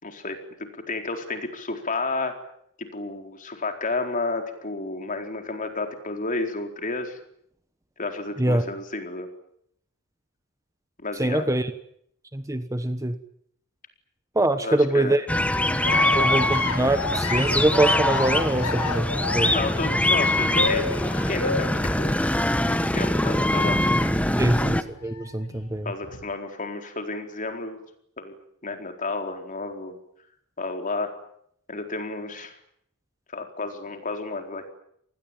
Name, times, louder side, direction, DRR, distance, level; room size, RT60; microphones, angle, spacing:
voice 1, 0.0-0.4 0.7-2.4 2.8-7.2 8.0-9.3 11.0-11.5 14.6-15.2 15.9-16.1 19.5-22.2 22.7-23.8 25.8-27.8 28.2-28.4 28.6-30.0 30.6-31.1 31.7-32.6 33.3-34.6, left 3 dB, 35° left, 5 dB, 4.3 m, -31 dB
voice 2, 11.2-11.7 12.3-13.2 14.3-15.2 16.1-19.1 19.3-19.5 24.4-25.9, right 1 dB, 15° right, 10 dB, 1.2 m, -23 dB
sound 1, 15.3-24.8, left 1 dB, 5° left, 1.3 m, -23 dB
sound 2, 15.8-24.7 25.0-26.2, left 3 dB, 90° left, 4.3 m, -32 dB
27.5 x 20.0 x 9.0 m, 0.70 s
head